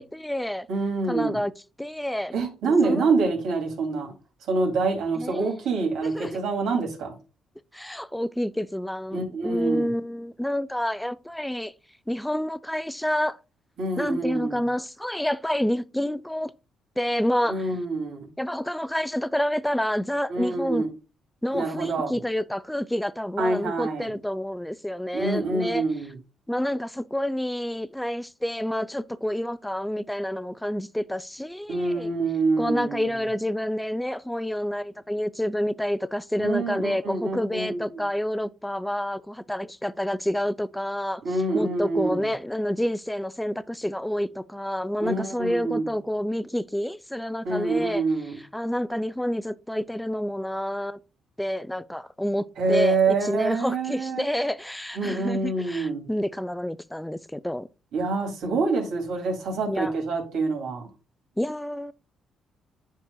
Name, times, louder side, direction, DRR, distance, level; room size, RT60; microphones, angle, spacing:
voice 1, 0.0-0.7 1.1-1.5 1.8-2.3 2.8-3.1 5.2-5.5 6.0-6.4 7.7-11.7 12.1-13.4 14.0-16.5 17.0-17.7 18.4-20.8 21.4-25.8 26.5-32.1 32.6-41.2 41.5-48.0 48.5-51.0 51.4-57.7 59.7-59.9 61.4-61.9, equal, 5° left, 0.4 m, -28 dB
voice 2, 0.7-1.4 2.3-4.1 4.5-7.1 9.1-9.9 13.8-14.6 17.5-18.3 20.3-20.9 21.5-22.2 23.4-24.1 25.1-26.2 31.7-33.1 36.4-37.9 41.2-42.3 45.0-45.9 47.4-48.4 52.6-54.2 54.9-56.1 57.9-60.9, right 3 dB, 80° right, 2.6 m, -26 dB
9.8 x 4.7 x 2.3 m
cardioid pair, 90°, 0 cm